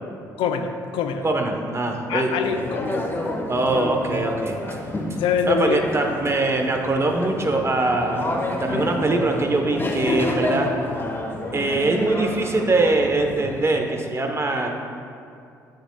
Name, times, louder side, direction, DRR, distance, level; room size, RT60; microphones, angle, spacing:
voice 1, 0.4-1.3 2.1-3.0 3.7-3.8 5.1-5.8, left 6 dB, 65° left, 7 dB, 0.5 m, -24 dB
voice 2, 1.2-2.3 3.5-4.6 5.5-10.7 11.5-14.8, right 2 dB, 30° right, 3 dB, 1.1 m, -22 dB
sound 1, 2.4-13.7, left 1 dB, 25° left, 1.1 m, -29 dB
9.3 x 7.7 x 2.3 m, 2.4 s
hypercardioid pair, 50°, 9 cm